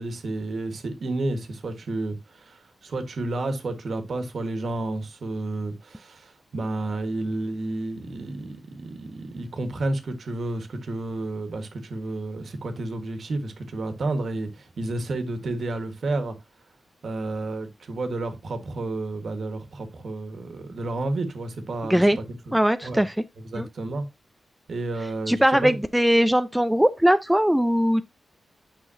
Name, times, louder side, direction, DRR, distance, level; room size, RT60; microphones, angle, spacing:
voice 1, 0.0-16.4 17.0-22.6 22.8-23.0 23.5-24.0 24.7-25.8, right 2 dB, 65° right, 1.6 m, -31 dB
voice 2, 22.5-23.2 23.6-23.7 25.3-28.0, equal, 5° right, 0.4 m, -20 dB
8.9 x 5.7 x 2.8 m
wide cardioid pair, 115°, 0 cm